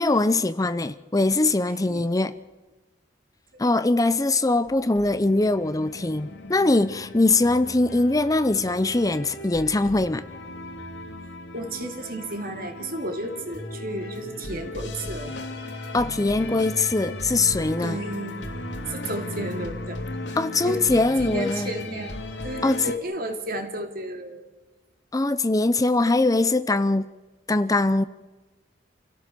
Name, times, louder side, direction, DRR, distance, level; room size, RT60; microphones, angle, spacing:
voice 1, 0.0-2.3 3.6-10.2 15.9-18.0 20.4-21.7 22.6-22.8 25.1-27.1 27.5-28.0, left 2 dB, 20° left, 0.6 m, -22 dB
sound 1, 4.6-23.0, left 2 dB, 70° left, 2.4 m, -36 dB
voice 2, 11.5-15.4 17.8-18.4 18.9-20.0 20.3-24.5, right 1 dB, 50° right, 2.8 m, -33 dB
28.0 x 17.0 x 6.9 m
head